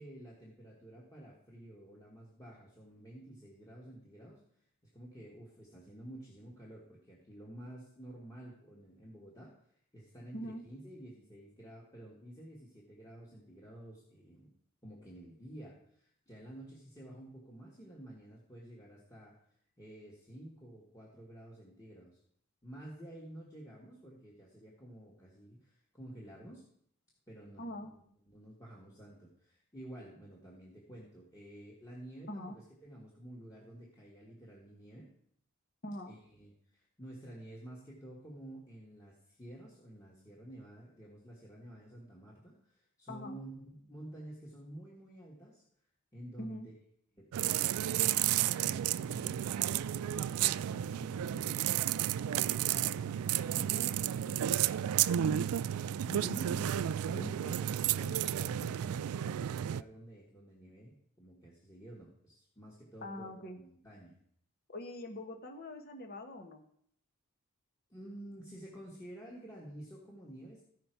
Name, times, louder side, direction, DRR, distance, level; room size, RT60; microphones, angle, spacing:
voice 1, 0.0-4.4 4.8-9.6 9.9-14.5 14.8-19.4 19.8-22.2 22.6-26.6 27.3-35.1 36.1-45.6 46.1-46.7 47.1-54.5 56.7-64.2 67.9-70.6, right 1 dB, 15° left, -5 dB, 1.7 m, -51 dB
voice 2, 27.6-27.9 32.3-32.6 35.8-36.1 43.1-43.4 46.4-46.7 55.2-55.5 56.0-57.3 63.0-63.6 64.7-66.6, equal, 45° left, 5 dB, 1.1 m, -43 dB
sound 1, 47.3-59.8, right 11 dB, 80° right, 0.3 m, -32 dB
15.0 x 5.7 x 4.6 m, 0.67 s
head